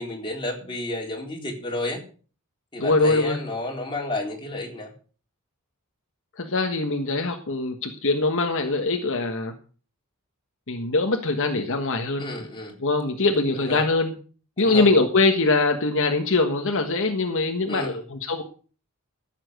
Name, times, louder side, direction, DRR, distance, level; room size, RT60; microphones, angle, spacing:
voice 1, 0.0-2.0 2.7-4.9 12.2-12.8 13.6-13.8 14.6-14.9 17.7-18.0, left 1 dB, 25° left, 0 dB, 3.9 m, -31 dB
voice 2, 2.8-3.4 6.4-9.5 10.7-12.3 12.8-14.1 14.6-18.4, left 3 dB, 60° left, 4 dB, 1.5 m, -22 dB
15.0 x 7.5 x 6.5 m, 0.40 s
head